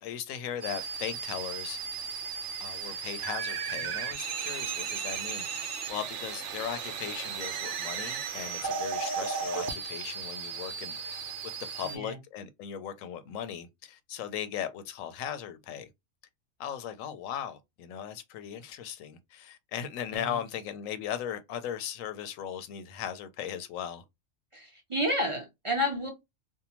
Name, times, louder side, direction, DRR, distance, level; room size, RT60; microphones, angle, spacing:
voice 1, 0.0-1.8 2.6-11.2 11.7-15.9 16.6-24.0, left 9 dB, 85° left, 1.0 m, -38 dB
sound 1, 0.6-12.0, right 6 dB, 70° right, 0.9 m, -35 dB
voice 2, 11.8-12.2 20.1-20.4 24.5-26.1, equal, 35° right, 0.6 m, -31 dB
2.7 x 2.1 x 2.8 m
omnidirectional pair, 1.3 m